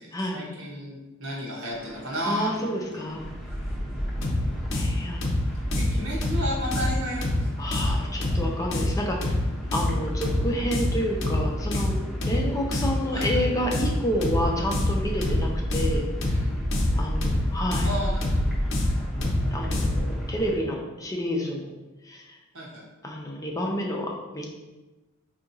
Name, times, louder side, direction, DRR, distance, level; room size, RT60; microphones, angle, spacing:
voice 1, 0.0-3.0 4.6-5.1 5.7-8.4 13.1-13.4 16.2-16.5 17.8-18.6 22.5-22.8, equal, 80° right, -3 dB, 1.1 m, -34 dB
sound 1, 1.7-20.6, equal, ahead, 0.8 m, -33 dB
voice 2, 2.3-3.2 4.7-5.2 7.6-9.3 9.7-11.9 12.2-16.1 17.0-17.9 19.5-21.7 22.0-22.4 23.0-24.5, equal, 15° left, 0 dB, 0.4 m, -29 dB
sound 2, 4.2-20.1, left 1 dB, 60° left, 0.6 m, -27 dB
4.6 x 2.7 x 2.6 m, 1.1 s
head